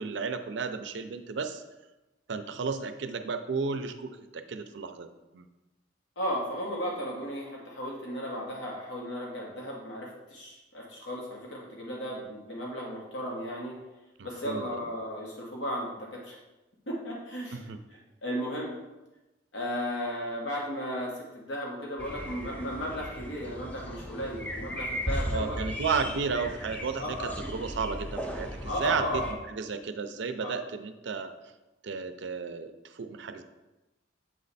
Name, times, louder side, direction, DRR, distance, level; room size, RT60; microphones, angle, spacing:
voice 1, 0.0-1.6 2.3-5.1 5.3-5.4 14.2-14.7 17.5-17.8 25.3-27.2 27.5-31.3 31.8-33.4, right 5 dB, 65° right, 9 dB, 0.4 m, -33 dB
voice 2, 6.2-13.7 14.2-16.3 16.9-18.7 19.5-25.6 27.0-27.4 28.7-29.3 30.4-30.5, equal, 70° left, -3 dB, 1.2 m, -35 dB
sound 1, 22.0-29.3, equal, 10° left, 0.5 m, -37 dB
7.4 x 3.2 x 4.0 m, 1.1 s
head